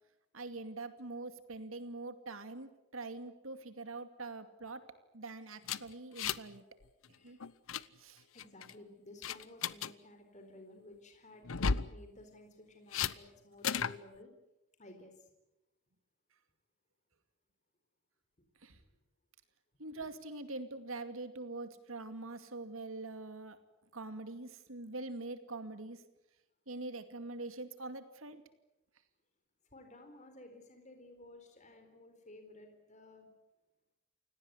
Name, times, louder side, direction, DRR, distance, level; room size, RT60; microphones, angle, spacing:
voice 1, 0.3-4.8 5.1-6.6 7.2-7.4 8.0-8.2 18.6-18.8 19.8-23.6 23.9-26.0 26.7-28.4, right 2 dB, 90° right, 10 dB, 2.5 m, -44 dB
sound 1, 5.6-6.6 6.8-7.1 7.4-7.8 8.4-8.7 9.2-9.9 11.4-11.9 12.9-13.1 13.6-14.0, left 6 dB, 85° left, 0.8 m, -34 dB
voice 2, 8.3-11.5 11.9-14.3 14.8-15.3 19.9-20.1 29.7-33.3, left 2 dB, 35° left, 5 dB, 4.2 m, -55 dB
29.0 x 18.0 x 9.8 m, 0.95 s
head